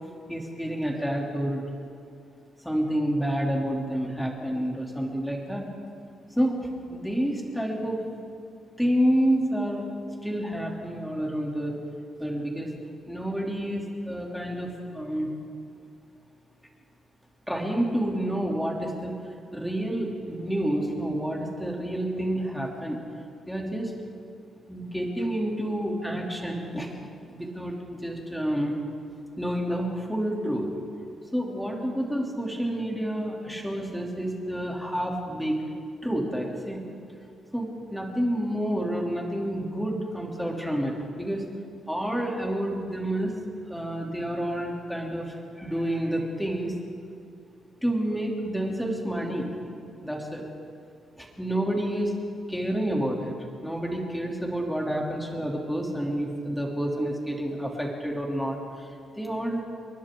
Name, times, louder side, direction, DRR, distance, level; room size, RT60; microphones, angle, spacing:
voice 1, 0.3-1.7 2.6-5.7 6.3-6.6 6.9-8.0 8.8-9.9 10.2-11.8 12.2-12.7 13.1-15.3 17.5-19.2 19.5-23.0 23.5-23.9 24.7-26.9 27.3-28.8 29.4-30.7 31.3-35.6 36.0-36.8 37.5-41.5 41.9-43.4 43.7-46.7 47.8-49.5 50.0-50.4 51.2-52.2 52.5-53.3 53.6-59.6, equal, ahead, -1 dB, 3.0 m, -29 dB
29.5 x 23.5 x 3.8 m, 2.4 s
cardioid pair, 155°, 0 cm